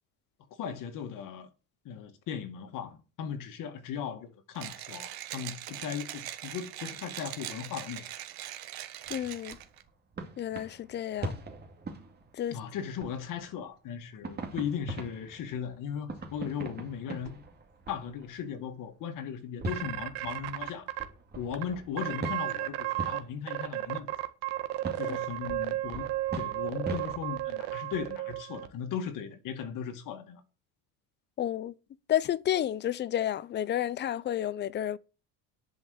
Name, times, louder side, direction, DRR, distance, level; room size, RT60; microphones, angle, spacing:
voice 1, 0.6-1.5 1.8-8.1 12.5-17.4 17.9-20.9 21.3-24.1 25.0-26.1 26.3-30.4, left 7 dB, 50° left, 2.1 m, -37 dB
Mechanisms, 4.6-9.8, right 13 dB, 60° right, 1.6 m, -41 dB
sound 1, 9.0-12.7 13.0-13.8 14.2-18.6 19.6-23.7 24.8-27.9, right 2 dB, 25° right, 2.4 m, -42 dB
voice 2, 9.1-9.6 10.4-11.3 12.4-12.6 25.0-25.2 31.4-31.7 32.1-35.0, left 11 dB, 30° left, 0.5 m, -31 dB
sound 2, 19.7-21.0 21.5-21.6 22.0-23.2 23.5-28.7, right 16 dB, 80° right, 1.5 m, -33 dB
10.5 x 5.6 x 7.9 m
cardioid pair, 135°, 40 cm